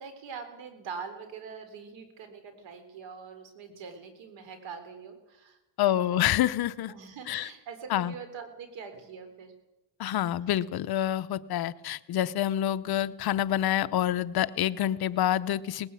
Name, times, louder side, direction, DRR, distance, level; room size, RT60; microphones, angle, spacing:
voice 1, 0.0-5.6 5.8-6.3 6.9-9.5, right 6 dB, 60° right, 8 dB, 4.0 m, -43 dB
voice 2, 5.8-6.9 7.3-7.5 7.9-8.1 10.0-15.9, left 12 dB, 50° left, 13 dB, 0.7 m, -27 dB
19.0 x 16.0 x 8.4 m, 1.0 s
cardioid pair, 130°, 49 cm